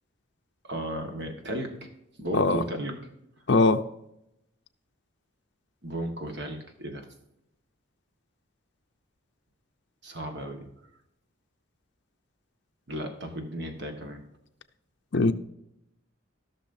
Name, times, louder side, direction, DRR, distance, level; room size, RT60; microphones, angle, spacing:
voice 1, 0.6-1.9 2.2-3.0 5.8-7.1 10.0-10.7 12.9-14.2, right 1 dB, 55° right, 1.5 m, -34 dB
voice 2, 3.5-3.8 15.1-15.3, left 3 dB, 55° left, 0.6 m, -21 dB
15.0 x 6.4 x 2.6 m
head